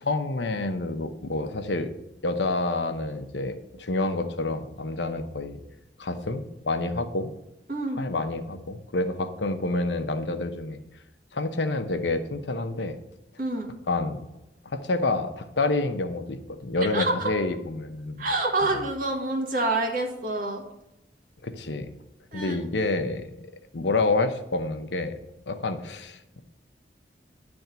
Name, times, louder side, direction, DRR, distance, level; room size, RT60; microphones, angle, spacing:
voice 1, 0.0-1.9 2.2-5.6 6.0-7.3 8.0-10.8 11.3-13.0 13.9-14.2 14.6-18.3 18.7-18.8 21.4-21.9 22.3-23.4 23.7-25.1 25.5-26.4, left 2 dB, 85° left, 8 dB, 0.8 m, -28 dB
voice 2, 7.7-8.0 13.4-13.7 16.9-17.2 18.2-20.6 22.3-22.6, right 2 dB, 50° right, 2 dB, 1.5 m, -27 dB
10.5 x 3.5 x 6.8 m, 0.92 s
head